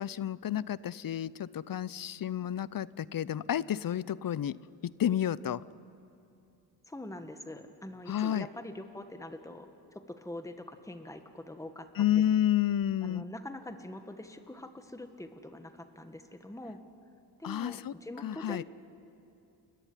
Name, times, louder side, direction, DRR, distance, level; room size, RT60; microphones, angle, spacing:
voice 1, 0.0-4.6 5.0-5.6 8.1-8.5 12.0-13.2 17.4-17.9 18.2-18.6, left 10 dB, 50° left, 20 dB, 0.6 m, -30 dB
voice 2, 6.9-12.2 13.0-16.8 17.4-18.6, left 1 dB, 5° left, 7 dB, 1.6 m, -44 dB
30.0 x 14.0 x 10.0 m, 2.7 s
cardioid pair, 60°, 43 cm